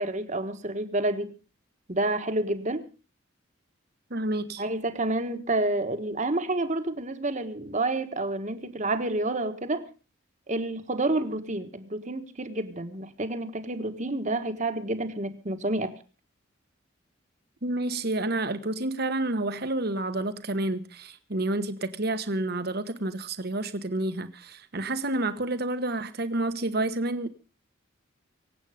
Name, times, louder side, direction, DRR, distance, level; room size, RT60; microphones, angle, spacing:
voice 1, 0.0-1.3 1.9-2.9 4.6-9.9 10.5-15.9, right 2 dB, 40° right, 1.5 m, -29 dB
voice 2, 4.1-4.6 17.6-27.3, right 2 dB, 55° right, 1.2 m, -29 dB
24.5 x 8.3 x 5.0 m
head